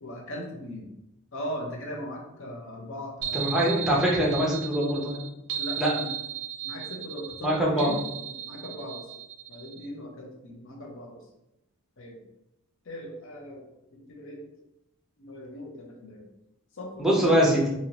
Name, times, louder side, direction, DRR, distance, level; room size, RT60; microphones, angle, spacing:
voice 1, 0.0-0.9 1.3-3.7 5.5-6.1 6.6-9.1 9.5-11.2 12.0-12.2 12.8-13.6 13.9-14.5 15.2-16.3 16.7-17.4, left 1 dB, 60° left, 0 dB, 0.7 m, -39 dB
sound 1, 3.2-9.9, right 10 dB, 55° right, 0.5 m, -36 dB
voice 2, 3.3-5.2 5.8-5.9 7.4-7.9 17.0-17.7, equal, ahead, -4 dB, 0.6 m, -23 dB
2.7 x 2.7 x 2.9 m, 0.89 s
head